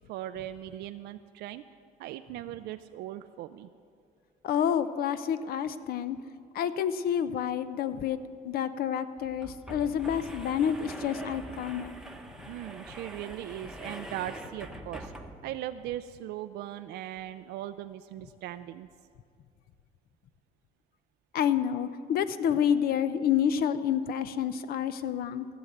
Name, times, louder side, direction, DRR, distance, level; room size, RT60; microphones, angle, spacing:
voice 1, 0.1-1.6 2.0-3.7 12.5-15.1 15.4-18.9, right 13 dB, 75° right, 9 dB, 0.4 m, -39 dB
voice 2, 4.4-6.2 6.5-8.2 8.4-11.9 21.3-25.5, left 9 dB, 60° left, 13 dB, 0.6 m, -28 dB
sound 1, 8.0-8.1 8.4-8.5 9.2-15.6, right 1 dB, 5° right, 0.9 m, -44 dB
15.0 x 7.0 x 7.9 m, 2.3 s
cardioid pair, 110°, 17 cm